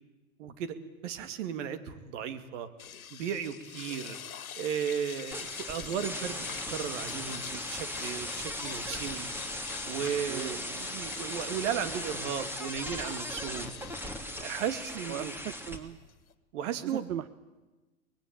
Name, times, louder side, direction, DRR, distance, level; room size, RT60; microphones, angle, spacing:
voice 1, 0.4-0.8 1.0-2.7 3.1-4.2 4.6-9.3 9.8-13.7 14.4-15.3 16.5-17.1, right 8 dB, 60° right, 11 dB, 2.5 m, -35 dB
sound 1, 2.8-16.3, left 8 dB, 80° left, 1.8 m, -44 dB
sound 2, 5.3-15.8, left 1 dB, 5° right, 2.9 m, -38 dB
voice 2, 10.3-10.9 15.1-16.0 16.8-17.3, right 10 dB, 80° right, 15 dB, 0.9 m, -38 dB
24.0 x 20.5 x 8.8 m, 1.2 s
hypercardioid pair, 105°, 42 cm